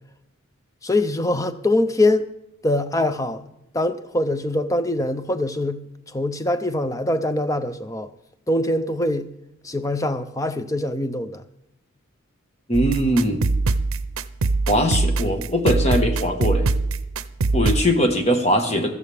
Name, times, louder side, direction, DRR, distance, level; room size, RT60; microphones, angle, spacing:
voice 1, 0.8-2.3 2.6-3.4 3.7-5.8 6.1-8.1 8.5-9.3 9.6-11.4, left 1 dB, 15° left, 0.6 m, -23 dB
voice 2, 12.7-13.5 14.7-16.6 17.5-18.9, equal, 30° left, 1.5 m, -21 dB
sound 1, 12.7-17.8, right 3 dB, 80° right, 0.6 m, -22 dB
16.5 x 13.0 x 3.5 m
head